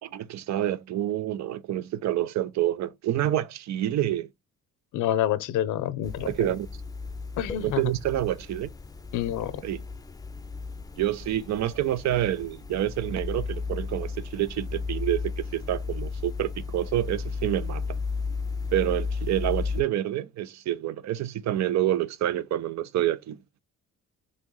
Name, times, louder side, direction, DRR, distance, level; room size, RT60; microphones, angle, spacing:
voice 1, 0.0-4.3 6.2-6.7 7.6-8.7 9.6-9.8 11.0-18.0 18.7-23.4, right 12 dB, 65° right, 0.5 m, -28 dB
voice 2, 4.9-6.5 7.4-7.8 9.1-9.5, left 11 dB, 85° left, 0.6 m, -27 dB
sound 1, 6.0-19.8, left 4 dB, 10° left, 0.5 m, -34 dB
4.0 x 3.1 x 3.1 m
cardioid pair, 90°, 30 cm